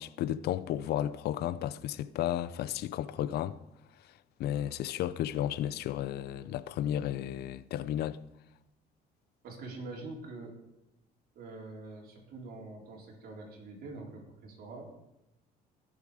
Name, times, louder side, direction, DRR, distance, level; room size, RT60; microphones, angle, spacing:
voice 1, 0.0-3.6 4.4-8.2, left 11 dB, 70° left, 0.6 m, -33 dB
voice 2, 9.4-10.5 11.3-14.9, right 3 dB, 65° right, 4.2 m, -45 dB
18.0 x 7.2 x 5.1 m
cardioid pair, 110°, 17 cm